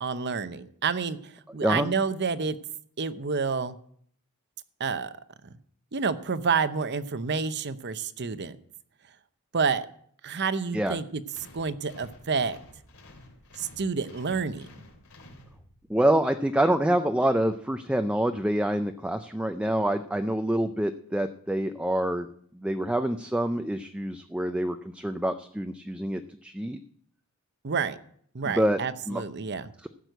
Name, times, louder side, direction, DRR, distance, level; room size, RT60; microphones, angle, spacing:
voice 1, 0.0-1.2 1.5-2.6 3.0-3.8 4.8-5.1 5.9-8.5 9.5-9.9 10.2-11.2 11.5-12.6 13.6-14.7 27.6-28.0 28.3-29.7, right 5 dB, 50° right, 12 dB, 0.8 m, -29 dB
sound 1, 11.3-16.0, left 2 dB, 65° left, 3.1 m, -51 dB
voice 2, 15.9-22.3 22.5-26.8 28.4-28.8 29.1-29.2 29.8-29.9, right 1 dB, 5° right, 7 dB, 0.4 m, -26 dB
15.0 x 6.3 x 8.0 m, 0.63 s
head